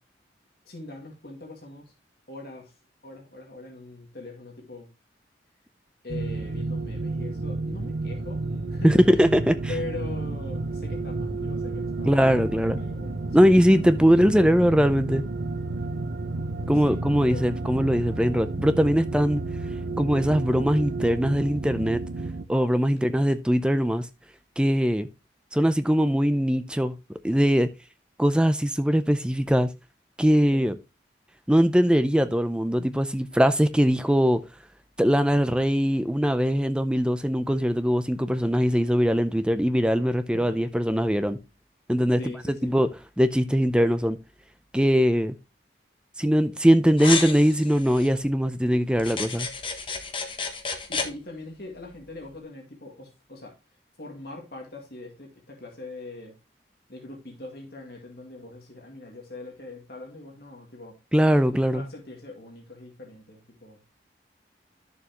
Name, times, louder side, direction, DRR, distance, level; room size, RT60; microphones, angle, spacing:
voice 1, 0.7-1.9 2.3-2.7 3.0-4.9 6.0-9.0 9.7-12.2 12.5-13.4 16.6-17.5 22.8-23.2 30.5-30.7 40.5-40.6 42.2-42.7 50.9-53.5 54.0-56.3 56.9-60.9 61.7-63.8, left 2 dB, 60° left, 2.1 m, -41 dB
sound 1, 6.1-22.5, right 3 dB, 80° right, 0.8 m, -31 dB
voice 2, 8.8-9.6 12.1-12.8 13.3-15.2 16.7-19.4 20.0-22.0 22.5-24.1 24.6-25.1 25.5-27.0 27.2-27.7 28.2-29.7 30.2-30.8 31.5-34.4 35.0-41.4 41.9-42.3 42.6-42.9 43.2-44.2 44.7-45.3 46.2-49.5 61.1-61.8, equal, 5° right, 0.5 m, -21 dB
sound 2, 47.0-48.1 49.0-51.1, left 4 dB, 30° left, 1.2 m, -31 dB
11.0 x 6.9 x 2.9 m
head